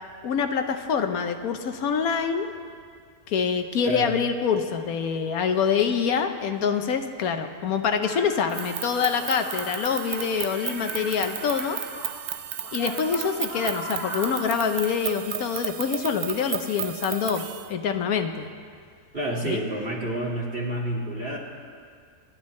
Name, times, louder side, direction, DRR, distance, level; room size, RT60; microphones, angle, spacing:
voice 1, 0.2-2.5 3.3-11.8 12.7-17.4 17.7-18.5 19.4-19.6, left 6 dB, 75° left, 7 dB, 1.2 m, -25 dB
sound 1, 8.0-12.1 12.6-14.5, left 1 dB, 90° left, 2.3 m, -39 dB
sound 2, 8.5-17.7, right 11 dB, 80° right, 1.1 m, -34 dB
voice 2, 19.1-21.4, right 1 dB, 35° right, -3 dB, 2.2 m, -29 dB
26.5 x 11.5 x 3.2 m, 2.1 s
omnidirectional pair, 1.6 m